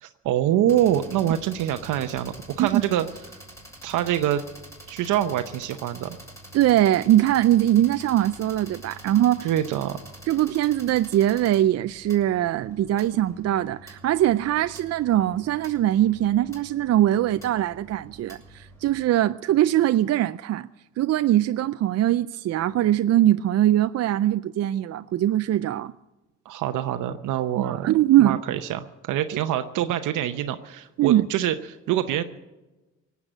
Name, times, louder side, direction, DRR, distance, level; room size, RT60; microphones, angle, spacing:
voice 1, 0.0-3.4 3.8-4.4 4.9-6.2 9.4-10.2 26.4-27.9 28.2-32.2, right 11 dB, 85° right, 0.8 m, -25 dB
sound 1, 0.7-19.1, right 1 dB, 10° left, 6.0 m, -46 dB
voice 2, 6.5-9.5 10.3-20.7 21.0-25.9 27.6-28.4 31.0-31.3, right 13 dB, 55° right, 0.5 m, -21 dB
18.5 x 8.3 x 8.9 m
cardioid pair, 90°, 30 cm